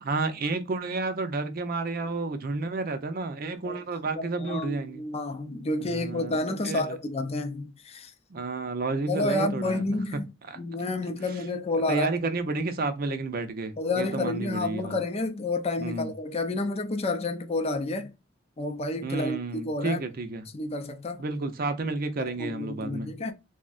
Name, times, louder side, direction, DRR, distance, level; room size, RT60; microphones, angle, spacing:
voice 1, 0.0-5.0 5.8-7.0 8.3-9.8 10.5-10.6 11.9-15.0 15.8-16.1 19.0-20.4 21.2-23.1, right 3 dB, 50° right, 0.5 m, -31 dB
voice 2, 4.2-8.1 9.0-10.3 10.6-12.1 13.8-18.1 18.6-20.0 20.5-21.2 22.2-23.3, left 2 dB, 30° left, 0.4 m, -30 dB
3.4 x 2.1 x 2.3 m
head